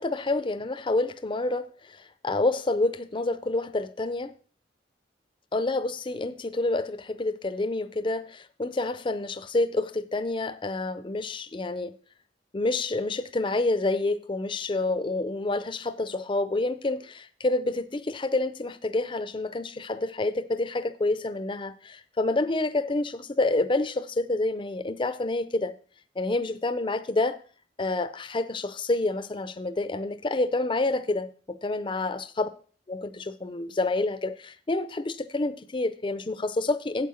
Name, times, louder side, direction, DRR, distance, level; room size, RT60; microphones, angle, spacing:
voice 1, 0.0-2.0 2.2-4.3 5.5-11.9 12.5-25.7 26.2-27.4 27.8-32.5 32.9-37.1, left 2 dB, 30° left, 0.5 m, -28 dB
8.5 x 8.2 x 4.3 m
head